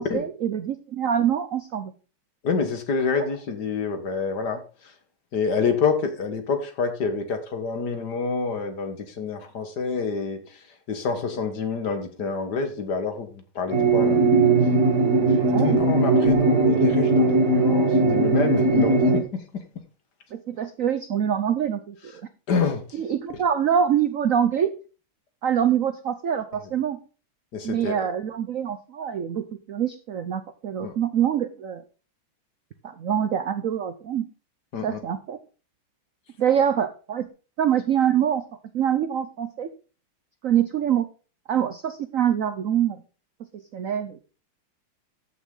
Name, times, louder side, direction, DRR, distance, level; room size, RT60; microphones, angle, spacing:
voice 1, 0.0-1.9 15.4-15.8 20.3-22.2 22.9-24.7 25.4-27.0 27.6-31.8 32.8-34.2 34.8-35.4 36.4-37.3 37.6-38.4 38.7-39.7 40.4-41.1 41.5-43.0 43.5-44.2, right 9 dB, 75° right, 0.7 m, -25 dB
voice 2, 2.4-4.9 5.3-14.2 15.5-19.6 22.5-23.0 27.5-27.9 30.8-31.0 34.7-35.0, left 5 dB, 55° left, 1.9 m, -27 dB
sound 1, 13.7-19.2, right 2 dB, 45° right, 2.0 m, -19 dB
13.5 x 6.2 x 3.8 m
omnidirectional pair, 2.4 m